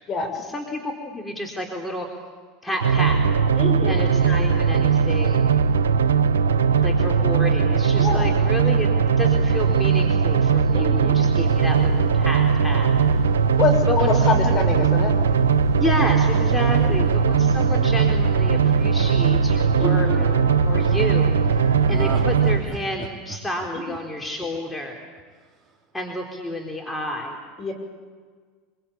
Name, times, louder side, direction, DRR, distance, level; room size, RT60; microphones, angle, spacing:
voice 1, 0.4-2.1 2.6-3.2 3.9-5.5 6.8-12.9 13.9-14.7 15.8-21.3 21.9-25.0 25.9-27.4, left 1 dB, 10° left, 1 dB, 4.2 m, -30 dB
sound 1, 2.8-22.6, right 6 dB, 90° right, 1.1 m, -19 dB
voice 2, 3.6-4.0 8.0-8.2 10.7-11.1 13.6-15.1 16.6-16.9 19.8-20.2 27.6-27.7, left 5 dB, 40° left, 4 dB, 6.6 m, -25 dB
sound 2, 11.1-22.8, left 2 dB, 85° left, 5.7 m, -36 dB
Laughter, 16.0-20.2 21.8-24.8 25.2-25.3, right 5 dB, 25° right, 5.6 m, -37 dB
25.0 x 23.5 x 8.8 m, 1.5 s
hypercardioid pair, 90°, 0 cm